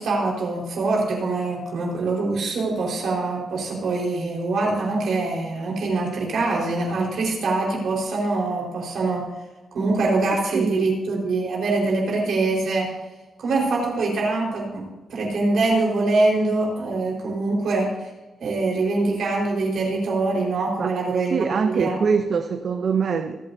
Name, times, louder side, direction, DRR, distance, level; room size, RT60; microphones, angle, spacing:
voice 1, 0.0-9.3 9.7-12.9 13.4-18.1 18.4-22.0, right 3 dB, 70° right, -2 dB, 4.6 m, -24 dB
voice 2, 10.5-10.9 20.8-20.9 21.3-23.4, right 5 dB, 50° right, 7 dB, 0.7 m, -23 dB
25.5 x 8.6 x 2.8 m, 1.2 s
cardioid pair, 125°, 0 cm